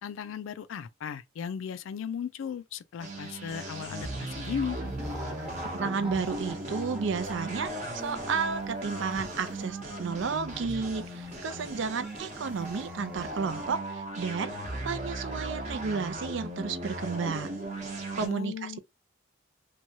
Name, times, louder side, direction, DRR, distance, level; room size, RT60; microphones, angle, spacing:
voice 1, 0.0-4.8 18.2-18.8, left 7 dB, 80° left, 0.3 m, -36 dB
sound 1, 3.0-18.3, right 1 dB, 35° right, 0.8 m, -37 dB
sound 2, 4.8-13.7, equal, 5° right, 0.7 m, -46 dB
voice 2, 5.7-14.6 14.8-17.6 18.1-18.8, right 5 dB, 70° right, 0.4 m, -32 dB
2.9 x 2.2 x 2.7 m
head